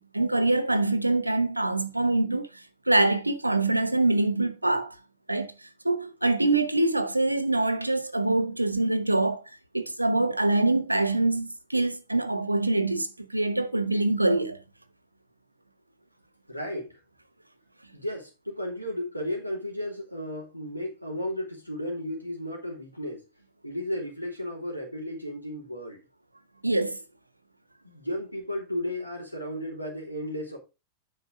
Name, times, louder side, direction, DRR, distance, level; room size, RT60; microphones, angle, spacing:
voice 1, 0.0-2.5 2.9-4.9 5.3-5.5 5.8-9.4 9.7-14.6 26.6-27.0, right 2 dB, 85° right, 0.9 m, -24 dB
voice 2, 16.5-17.0 17.9-23.2 23.6-26.0 27.8-30.6, left 1 dB, 90° left, 3.4 m, -34 dB
9.1 x 5.5 x 4.8 m
figure-of-eight pair, 90°, 0 cm